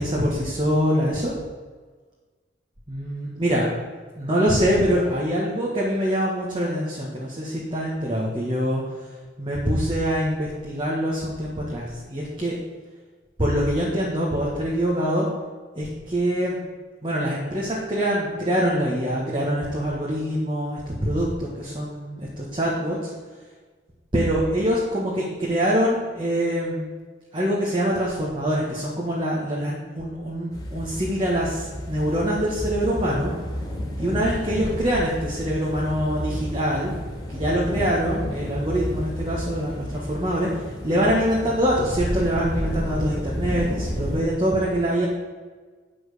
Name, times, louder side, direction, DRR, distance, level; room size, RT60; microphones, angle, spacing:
voice 1, 0.0-1.3 2.9-3.7 4.2-8.8 9.4-12.6 13.4-15.3 15.8-16.6 17.0-23.0 24.1-26.8 27.3-33.3 34.0-36.9 37.3-40.5 40.8-45.1, equal, 25° right, -5 dB, 1.8 m, -24 dB
sound 1, 30.5-44.2, equal, 20° left, 2.3 m, -31 dB
9.9 x 6.1 x 6.9 m, 1.4 s
head